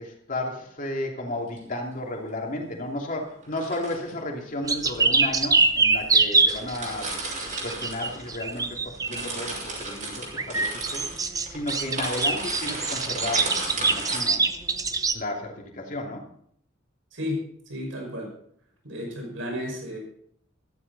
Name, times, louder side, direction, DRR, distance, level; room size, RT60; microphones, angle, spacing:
voice 1, 0.0-7.1 7.6-14.4 15.1-16.2, left 1 dB, 40° left, 1 dB, 2.8 m, -33 dB
sound 1, 1.3-1.6 3.4-4.1 4.9-5.0 5.8-5.9 6.1-6.2 6.4-8.6 8.9-14.2, right 2 dB, 40° right, 5.6 m, -34 dB
sound 2, 4.7-9.2 10.3-15.1, right 4 dB, 20° right, 0.7 m, -24 dB
voice 2, 17.7-18.3 18.8-20.0, left 1 dB, 85° right, 1 dB, 5.6 m, -32 dB
14.0 x 13.5 x 4.1 m, 0.64 s
head